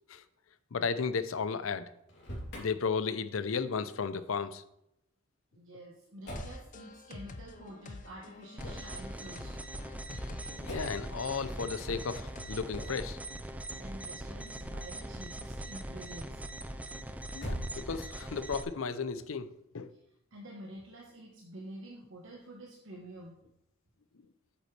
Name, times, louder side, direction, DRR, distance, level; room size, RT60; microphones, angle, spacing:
voice 1, 0.7-1.9 2.6-4.6 10.6-13.2 17.3-19.5 19.7-19.9, left 5 dB, 80° left, 13 dB, 0.6 m, -34 dB
Motor vehicle (road), 2.1-2.7 6.2-6.6 8.6-8.9 10.6-11.1 12.7-13.0 17.3-18.2, equal, 55° left, 3.1 m, -41 dB
voice 2, 5.5-9.6 13.2-13.3 13.7-16.4 19.9-20.0 20.3-23.4, right 1 dB, 70° right, -2 dB, 1.2 m, -48 dB
sound 1, 6.3-12.9, left 3 dB, 40° left, 0.6 m, -48 dB
sound 2, 8.6-18.6, right 1 dB, 5° right, 0.4 m, -41 dB
8.4 x 8.1 x 3.2 m, 0.80 s
head